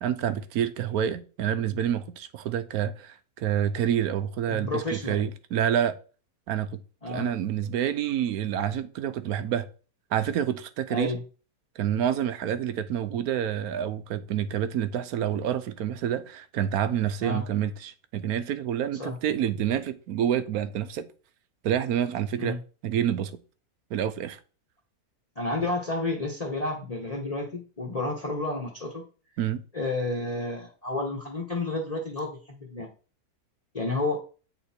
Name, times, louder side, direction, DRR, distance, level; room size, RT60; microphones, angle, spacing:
voice 1, 0.0-5.9 6.5-6.8 7.1-9.7 10.1-11.1 11.8-21.1 21.6-22.6 22.8-23.3 23.9-24.4 29.4-29.6, right 9 dB, 75° right, 1.1 m, -28 dB
voice 2, 4.5-5.3 7.0-7.3 10.9-11.2 17.2-17.4 19.0-19.1 22.4-22.6 25.4-29.0 29.7-32.9 33.7-34.2, left 2 dB, 25° left, 1.1 m, -31 dB
8.1 x 3.9 x 4.3 m
omnidirectional pair, 1.6 m